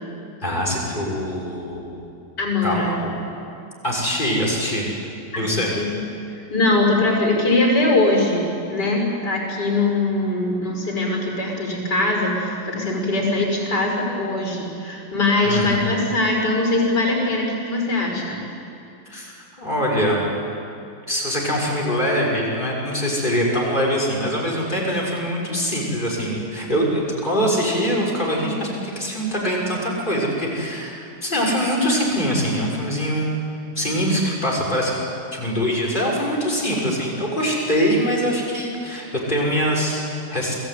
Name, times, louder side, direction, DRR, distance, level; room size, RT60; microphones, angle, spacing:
voice 1, 0.4-2.0 2.6-2.9 3.8-4.9 5.4-5.7 15.4-15.9 19.1-19.3 19.6-20.2 21.1-33.4 33.7-35.0 35.3-40.5, equal, 25° left, -3 dB, 6.5 m, -23 dB
voice 2, 2.4-2.9 5.3-6.0 6.5-18.4, left 2 dB, 60° left, 1 dB, 6.3 m, -21 dB
29.5 x 21.0 x 9.5 m, 2.6 s
omnidirectional pair, 2.0 m